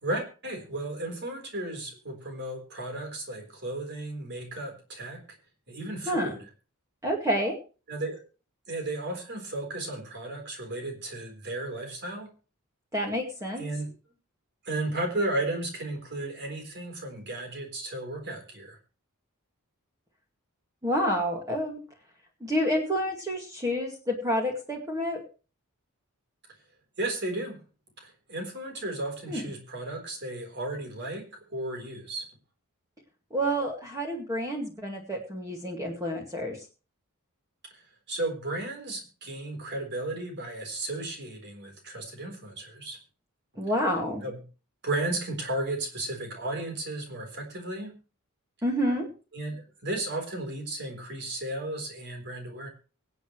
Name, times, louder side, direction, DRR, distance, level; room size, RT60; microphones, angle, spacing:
voice 1, 0.0-5.2 5.7-6.4 7.9-8.2 8.7-12.3 13.6-13.9 14.6-18.8 27.0-27.6 28.0-32.2 37.7-37.8 38.1-43.0 44.2-44.4 44.8-47.9 49.3-52.7, right 2 dB, 50° right, 4 dB, 4.1 m, -34 dB
voice 2, 6.1-6.4 7.0-7.6 12.9-13.6 20.8-21.8 22.4-25.2 29.3-29.4 33.3-36.6 43.6-44.2 48.6-49.1, equal, 15° right, 1 dB, 2.1 m, -28 dB
24.0 x 8.1 x 3.2 m, 0.35 s
head